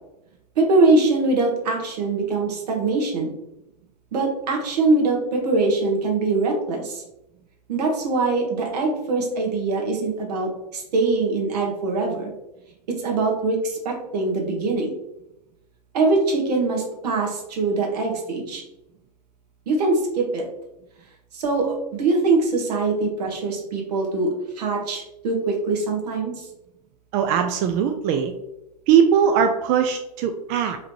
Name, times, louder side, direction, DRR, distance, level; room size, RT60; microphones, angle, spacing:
voice 1, 0.5-3.3 4.1-7.0 7.7-12.3 12.9-14.9 15.9-18.6 19.7-20.4 21.3-24.3 24.6-26.5, right 3 dB, 70° right, 0 dB, 1.5 m, -23 dB
voice 2, 27.1-28.3 28.9-30.8, right 8 dB, 40° right, 6 dB, 0.4 m, -20 dB
4.8 x 3.1 x 3.1 m, 0.91 s
hypercardioid pair, 120°, 21 cm